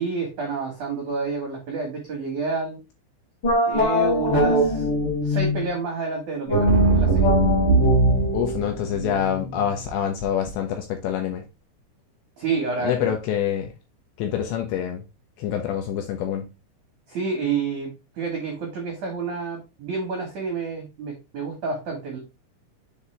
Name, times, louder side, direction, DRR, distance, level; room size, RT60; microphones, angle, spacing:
voice 1, 0.0-2.8 3.7-4.9 5.2-7.3 12.4-13.1 17.1-17.9 18.2-22.2, right 4 dB, 75° right, 1.8 m, -29 dB
sound 1, 3.4-5.7 6.5-9.8, equal, 35° left, 1.9 m, -21 dB
sound 2, 6.7-9.4, right 8 dB, 90° right, 2.5 m, -24 dB
voice 2, 8.3-11.4 12.8-13.7 14.2-15.0 15.4-16.5, left 9 dB, 80° left, 2.7 m, -26 dB
7.1 x 4.2 x 3.3 m
omnidirectional pair, 5.9 m